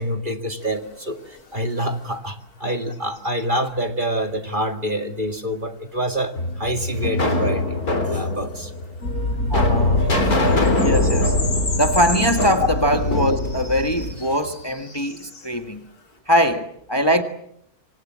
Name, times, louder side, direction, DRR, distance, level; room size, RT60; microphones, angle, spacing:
voice 1, 0.0-7.8 8.1-8.7 12.6-12.7, equal, 35° right, 2.1 m, -26 dB
sound 1, 0.6-2.2 2.6-3.4 7.0-8.7 9.5-9.7 10.1-10.2 10.5-15.6, left 3 dB, 90° left, 3.5 m, -35 dB
sound 2, 6.4-14.5, left 2 dB, 75° left, 4.2 m, -23 dB
sound 3, 9.0-14.1, left 1 dB, 60° left, 4.7 m, -26 dB
voice 2, 9.5-10.0 10.8-11.4 11.7-15.8 16.3-17.2, equal, 15° left, 1.7 m, -21 dB
27.5 x 25.5 x 7.6 m
omnidirectional pair, 1.6 m